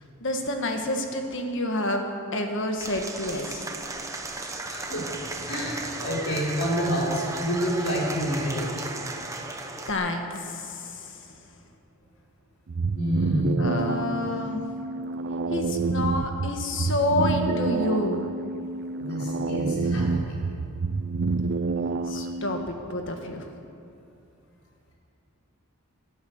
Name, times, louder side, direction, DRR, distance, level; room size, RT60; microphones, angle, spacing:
voice 1, 0.2-3.6 9.9-11.2 13.6-14.7 15.5-18.3 22.1-23.5, left 1 dB, 55° left, 4 dB, 1.6 m, -29 dB
Applause / Crowd, 2.8-9.9, right 2 dB, 15° right, 1.0 m, -35 dB
voice 2, 4.7-5.1 5.5-8.7 12.9-13.7 19.0-20.4 22.1-22.3, equal, 75° left, -4 dB, 4.5 m, -28 dB
sound 1, 12.7-22.7, right 3 dB, 50° right, 0.5 m, -28 dB
18.5 x 12.0 x 6.5 m, 2.6 s
head